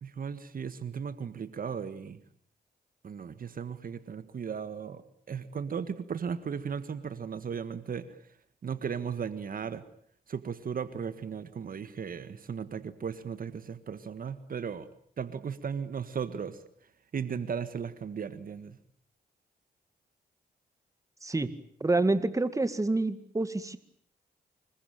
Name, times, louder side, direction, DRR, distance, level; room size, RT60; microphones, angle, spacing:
voice 1, 0.0-2.2 3.0-8.1 8.6-9.8 10.3-14.9 15.2-16.6 17.1-18.8, right 6 dB, 60° right, 12 dB, 1.7 m, -36 dB
voice 2, 21.8-23.8, right 2 dB, 20° right, 12 dB, 2.1 m, -27 dB
26.0 x 22.5 x 9.2 m, 0.64 s
cardioid pair, 85°, 17 cm